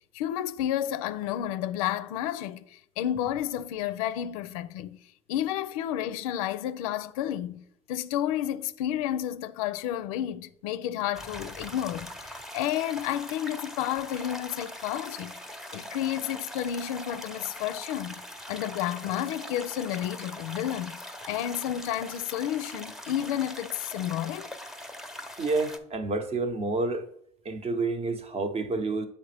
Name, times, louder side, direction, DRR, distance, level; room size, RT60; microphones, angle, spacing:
voice 1, 0.1-5.0 5.3-15.3 15.7-18.2 18.5-21.0 21.3-24.5, left 11 dB, 80° left, 0.4 m, -31 dB
sound 1, 11.1-25.8, equal, ahead, 0.7 m, -42 dB
voice 2, 25.4-27.1 27.4-29.1, right 3 dB, 35° right, 0.8 m, -29 dB
7.2 x 4.1 x 3.4 m
hypercardioid pair, 75°, 18 cm